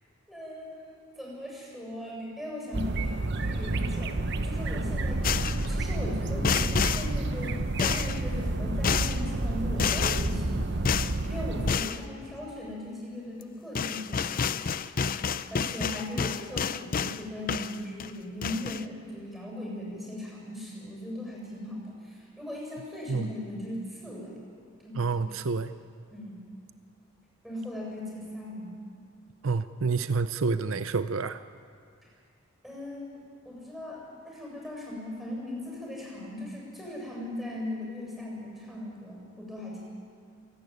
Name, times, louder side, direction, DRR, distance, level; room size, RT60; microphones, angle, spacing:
voice 1, 0.3-14.6 15.1-24.4 24.8-25.4 26.1-26.4 27.4-28.8 32.6-33.2 33.4-39.8, left 1 dB, ahead, -3 dB, 7.4 m, -39 dB
sound 1, 2.7-11.7, right 2 dB, 55° right, 1.0 m, -30 dB
sound 2, 5.2-5.7 6.4-7.1 7.8-8.2 8.8-9.2 9.8-10.3 10.9-11.2 11.7-12.0 13.4-13.5 13.8-17.2 17.5-18.1 18.4-18.8, left 6 dB, 45° left, 0.5 m, -29 dB
voice 2, 24.9-25.7 29.4-31.4, right 4 dB, 75° right, 12 dB, 0.6 m, -28 dB
29.0 x 12.0 x 9.5 m, 2.2 s
head